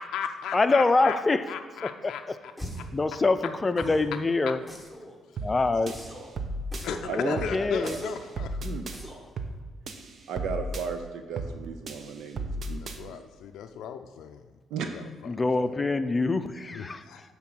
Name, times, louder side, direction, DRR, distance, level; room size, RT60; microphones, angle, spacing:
voice 1, 0.0-1.2 1.5-2.5 2.8-2.9 6.8-8.6 12.7-14.4 14.8-15.0 15.7-15.8 16.7-17.2, left 8 dB, 80° left, 6 dB, 0.4 m, -36 dB
voice 2, 0.5-1.4 1.8-2.4 2.9-4.6 5.4-5.9 7.2-8.0 15.3-17.0, left 3 dB, 25° left, 10 dB, 0.5 m, -25 dB
sound 1, 2.6-3.0 3.8-4.1 4.7-5.2 5.9-6.3 6.7-7.1 7.8-8.3 8.9-9.3, equal, 5° right, 1.3 m, -40 dB
sound 2, 5.4-5.6 5.9-6.9 7.4-7.6 7.9-9.0 9.4-9.6 9.9-10.9 11.4-11.6 11.9-13.0, right 2 dB, 50° right, 0.7 m, -35 dB
voice 3, 7.0-7.5 7.8-8.0 8.6-8.9 10.3-13.3 14.7-14.9, right 6 dB, 85° right, 6 dB, 0.6 m, -35 dB
9.6 x 3.7 x 6.2 m, 1.4 s
cardioid pair, 90°, 0 cm